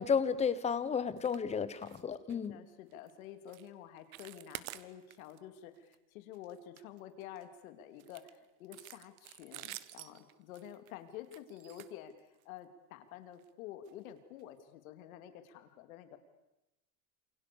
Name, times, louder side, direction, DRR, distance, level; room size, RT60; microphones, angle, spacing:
voice 1, 0.0-2.6, left 6 dB, 15° left, 15 dB, 1.0 m, -32 dB
sound 1, 1.2-1.4 1.7-2.0 2.3-2.5 2.9-3.1 3.5-3.7 4.0-5.4 5.7-6.0 6.3-7.4 8.0-12.6 13.3-13.5 13.9-14.0 14.4-14.5, right 16 dB, 85° right, 1.6 m, -50 dB
voice 2, 2.3-16.2, left 10 dB, 75° left, 9 dB, 3.0 m, -50 dB
29.5 x 28.0 x 7.1 m, 0.95 s
supercardioid pair, 165°, 42 cm